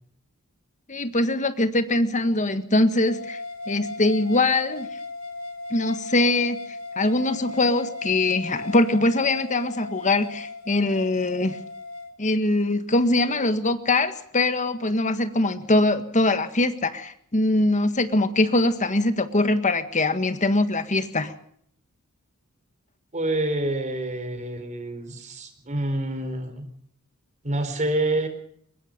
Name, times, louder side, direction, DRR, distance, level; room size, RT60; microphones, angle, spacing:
voice 1, 0.9-3.4 3.7-4.9 5.7-6.6 7.0-11.6 12.2-21.3, left 2 dB, 35° left, 10 dB, 1.7 m, -22 dB
sound 1, 3.1-12.1, left 2 dB, 75° left, 3.4 m, -37 dB
voice 2, 23.1-26.6 27.4-28.3, right 1 dB, 35° right, 9 dB, 4.3 m, -27 dB
23.0 x 21.5 x 5.3 m, 0.65 s
head